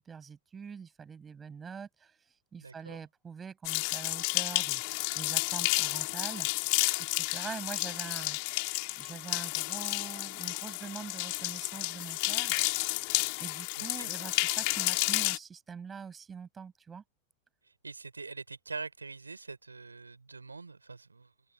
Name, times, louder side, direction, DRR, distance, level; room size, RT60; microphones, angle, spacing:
voice 1, 0.0-2.2 2.5-4.8 5.2-6.5 7.1-8.4 9.0-12.5 13.4-17.0, right 6 dB, 20° right, 7.8 m, -44 dB
voice 2, 2.6-3.0 7.4-7.5 13.8-14.1 17.8-21.3, right 4 dB, 80° right, 6.6 m, -44 dB
sound 1, 3.6-15.4, left 34 dB, 45° left, 3.9 m, -31 dB
open air
figure-of-eight pair, 90°, 0 cm